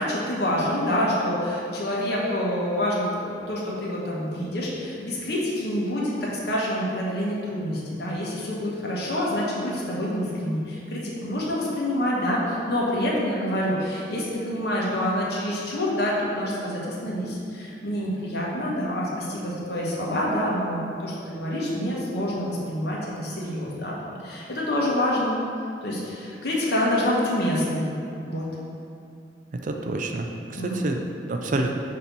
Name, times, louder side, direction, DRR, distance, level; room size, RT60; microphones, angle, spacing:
voice 1, 0.0-23.9 24.2-25.4 25.8-27.8 28.3-28.5 30.6-30.8, left 1 dB, 60° left, -5 dB, 1.2 m, -27 dB
voice 2, 29.5-31.8, right 2 dB, 45° right, 3 dB, 0.4 m, -28 dB
6.7 x 2.9 x 5.4 m, 2.5 s
head